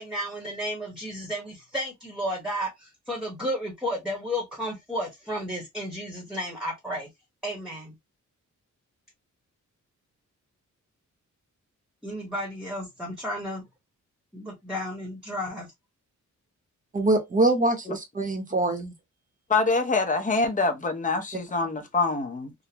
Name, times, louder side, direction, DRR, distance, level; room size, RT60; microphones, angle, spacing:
voice 1, 0.0-7.1 7.4-7.9 12.0-13.6 14.3-15.7, equal, ahead, 1.1 m, -33 dB
voice 2, 16.9-18.9, right 2 dB, 25° right, 0.8 m, -24 dB
voice 3, 19.5-22.5, left 3 dB, 25° left, 0.7 m, -25 dB
3.7 x 2.1 x 2.8 m
wide cardioid pair, 155°, 31 cm